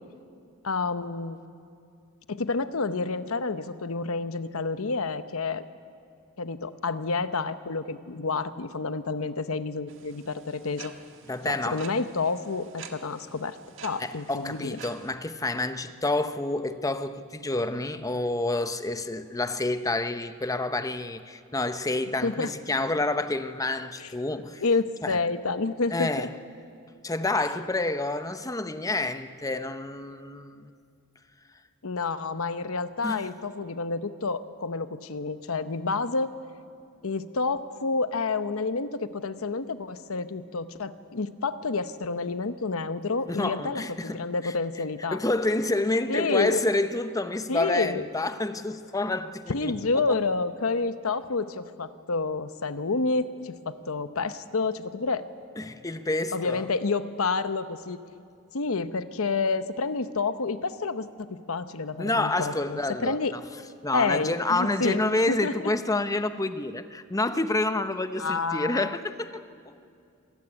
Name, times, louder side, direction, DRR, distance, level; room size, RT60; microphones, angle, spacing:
voice 1, 0.6-1.4 2.3-5.6 6.4-10.9 11.5-13.6 13.8-14.8 22.2-22.5 24.0-24.1 24.6-26.3 31.8-36.3 37.0-45.2 46.1-46.6 47.5-48.1 49.5-55.3 56.3-58.0 58.5-63.3 63.9-65.0 65.3-65.7 68.2-69.0, left 4 dB, 75° left, 0.9 m, -29 dB
sound 1, 9.9-15.1, right 6 dB, 65° right, 1.6 m, -48 dB
voice 2, 11.3-11.9 14.0-24.6 25.0-25.2 25.9-26.3 27.0-30.7 33.0-33.3 43.3-44.5 45.1-49.7 50.1-50.2 55.6-56.7 62.0-63.4 63.8-69.8, left 2 dB, 15° left, 0.8 m, -28 dB
25.5 x 15.0 x 9.8 m
head